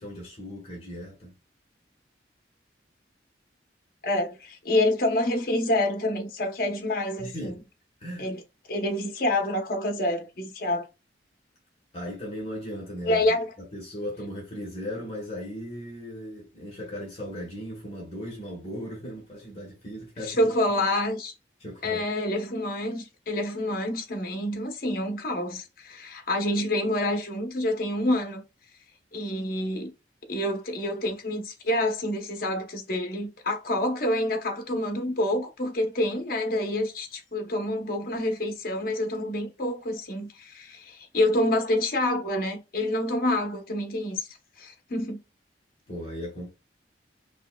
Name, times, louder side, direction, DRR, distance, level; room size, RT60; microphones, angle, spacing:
voice 1, 0.0-1.3 7.2-7.6 8.0-8.3 11.9-20.5 21.6-22.0 45.9-46.5, equal, 35° left, 1.3 m, -37 dB
voice 2, 4.0-7.5 8.2-8.4 8.7-10.9 13.0-13.5 20.2-21.3 21.8-28.4 29.1-29.9 30.3-44.3 44.6-45.2, left 1 dB, 50° left, 0.9 m, -27 dB
5.3 x 2.3 x 2.2 m
head